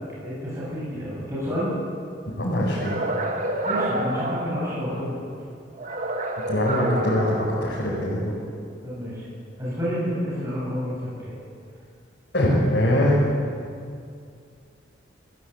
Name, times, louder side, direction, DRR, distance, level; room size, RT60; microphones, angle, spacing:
voice 1, 0.2-1.7 3.6-5.2 8.8-9.2 9.6-11.3, equal, 15° right, -8 dB, 7.6 m, -29 dB
voice 2, 2.4-3.1 6.5-8.3 12.3-13.3, left 1 dB, 55° left, -6 dB, 5.6 m, -22 dB
sound 1, 2.8-5.2 5.8-8.2, right 1 dB, 40° right, 2.0 m, -29 dB
28.0 x 16.0 x 8.3 m, 2.3 s
head